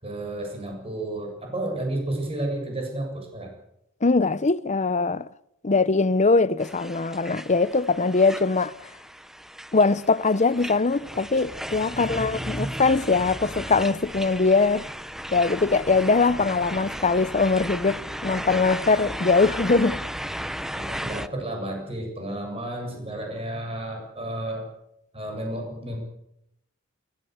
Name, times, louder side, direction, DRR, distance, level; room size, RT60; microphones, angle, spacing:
voice 1, 0.0-3.5 11.9-12.7 20.7-24.7 25.1-26.0, right 1 dB, 30° right, 7.5 m, -32 dB
voice 2, 4.0-5.2 5.6-8.7 9.7-14.9 15.3-20.0, left 3 dB, 35° left, 0.8 m, -21 dB
sound 1, 6.6-21.3, equal, ahead, 0.8 m, -35 dB
29.0 x 15.5 x 8.1 m
head